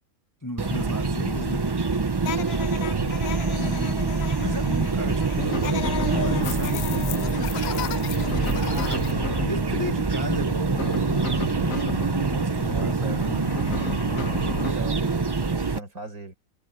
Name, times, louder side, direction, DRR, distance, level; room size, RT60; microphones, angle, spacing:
voice 1, 0.4-1.7 3.5-11.0 12.2-13.5, left 1 dB, 15° left, 0.8 m, -35 dB
sound 1, 0.6-15.8, right 4 dB, 30° right, 0.4 m, -25 dB
sound 2, 2.2-9.1, left 12 dB, 75° left, 0.6 m, -36 dB
voice 2, 2.9-3.4 12.7-13.3 14.6-16.3, right 2 dB, 70° right, 5.0 m, -38 dB
sound 3, 5.4-14.7, left 3 dB, 60° left, 2.3 m, -33 dB
omnidirectional pair, 1.6 m